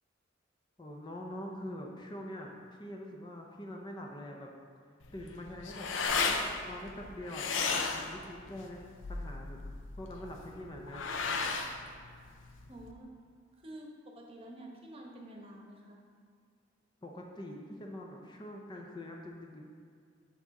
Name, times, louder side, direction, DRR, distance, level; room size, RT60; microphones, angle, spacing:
voice 1, 0.8-2.5 2.8-4.5 5.1-5.9 6.2-8.8 9.1-9.6 10.0-11.1 17.0-19.6, left 1 dB, 25° left, 0 dB, 0.6 m, -44 dB
sound 1, 5.0-12.9, left 4 dB, 75° left, 0.6 m, -35 dB
voice 2, 12.7-13.1 13.6-16.0, right 1 dB, 30° right, 0 dB, 1.0 m, -49 dB
6.1 x 6.0 x 4.1 m, 2.2 s
head